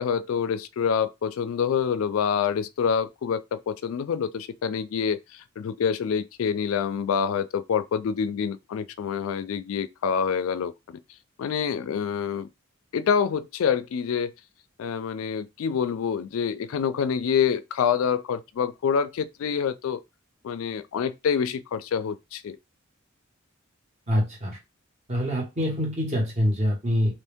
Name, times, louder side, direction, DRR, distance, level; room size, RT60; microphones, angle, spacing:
voice 1, 0.0-11.0 11.4-12.5 12.9-14.3 14.8-20.0 20.4-22.6, left 7 dB, 75° left, 0.3 m, -26 dB
voice 2, 24.1-24.6 25.1-27.1, equal, 35° right, 1.5 m, -25 dB
3.0 x 2.6 x 3.5 m
head